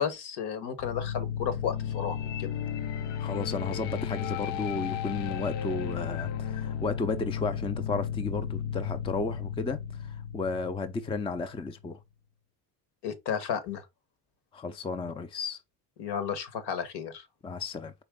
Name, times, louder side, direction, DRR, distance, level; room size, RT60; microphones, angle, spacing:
voice 1, 0.0-2.5 13.0-13.9 16.0-17.3, left 8 dB, 65° left, 1.3 m, -33 dB
sound 1, 0.8-11.7, left 8 dB, 80° left, 0.7 m, -34 dB
voice 2, 3.2-12.0 14.5-15.6 17.4-17.9, left 4 dB, 15° left, 0.4 m, -33 dB
4.5 x 3.0 x 3.6 m
supercardioid pair, 95°, 44 cm